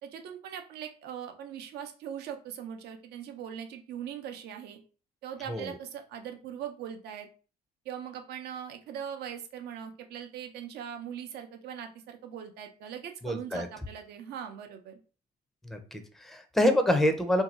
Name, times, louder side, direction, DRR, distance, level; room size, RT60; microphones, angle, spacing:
voice 1, 0.0-4.8 5.2-7.3 7.8-15.0, right 9 dB, 75° right, 6 dB, 0.7 m, -40 dB
voice 2, 13.2-13.7 15.6-17.4, left 1 dB, ahead, 6 dB, 0.5 m, -26 dB
2.7 x 2.3 x 4.1 m, 0.37 s
cardioid pair, 110°, 17 cm